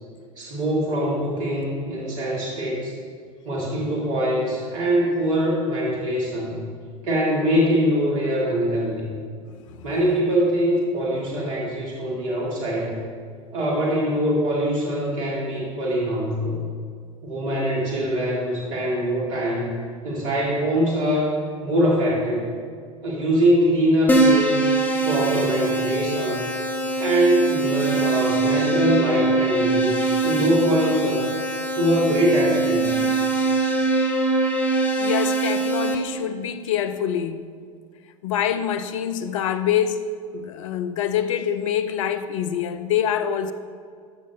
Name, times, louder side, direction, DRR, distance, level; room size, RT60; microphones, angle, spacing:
voice 1, 0.4-2.9 3.4-6.6 7.0-9.0 9.8-13.0 13.5-16.6 17.2-19.7 20.0-21.3 21.6-22.5 23.0-24.7 25.1-26.5 27.0-31.3 31.8-33.0, equal, 60° right, 2.3 m, -23 dB
Keyboard (musical), 24.1-35.9, right 3 dB, 10° left, 1.4 m, -22 dB
voice 2, 35.0-37.5 38.2-43.5, left 9 dB, 65° left, 0.6 m, -25 dB
13.0 x 6.3 x 4.0 m
figure-of-eight pair, 80°, 18 cm